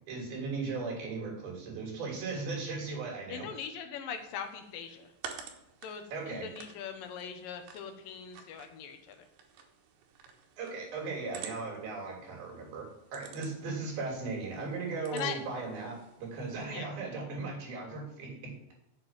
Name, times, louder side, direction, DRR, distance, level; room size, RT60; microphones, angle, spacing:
voice 1, 0.1-3.5 6.1-6.5 10.6-18.5, right 3 dB, 55° right, -1 dB, 4.7 m, -37 dB
voice 2, 3.3-5.1 5.8-9.3 15.1-15.4 16.7-16.9, left 7 dB, 70° left, 6 dB, 2.1 m, -41 dB
sound 1, 4.1-16.7, right 7 dB, 80° right, 3.6 m, -51 dB
7.8 x 7.6 x 7.3 m, 0.85 s
omnidirectional pair, 5.3 m